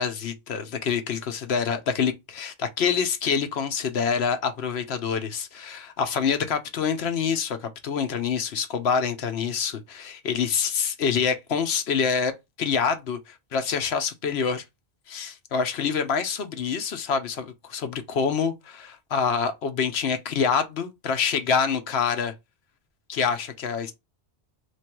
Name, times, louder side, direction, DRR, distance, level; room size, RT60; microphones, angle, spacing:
voice 1, 0.0-12.3 12.6-14.6 15.1-22.3 23.1-23.9, left 6 dB, 80° left, 1.0 m, -26 dB
3.2 x 2.5 x 4.4 m
omnidirectional pair, 1.1 m